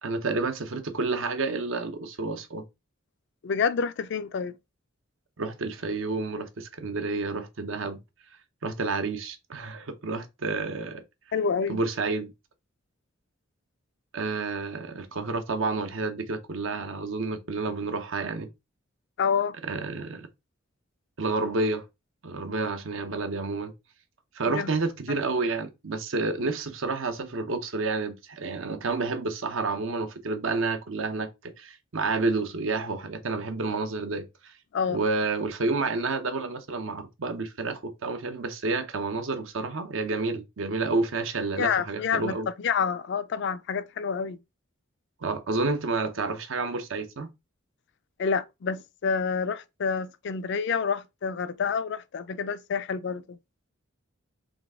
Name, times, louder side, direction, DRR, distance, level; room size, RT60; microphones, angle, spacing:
voice 1, 0.0-2.6 5.4-8.0 8.6-11.0 11.7-12.3 14.1-18.5 19.7-20.3 21.2-21.9 22.2-23.7 24.3-34.5 34.9-42.5 45.2-47.3, right 3 dB, 70° right, 0.7 m, -30 dB
voice 2, 3.4-4.5 11.3-11.8 19.2-19.6 24.5-24.7 34.7-35.0 41.6-44.4 48.2-53.4, left 6 dB, 60° left, 0.4 m, -28 dB
3.9 x 3.2 x 3.5 m
head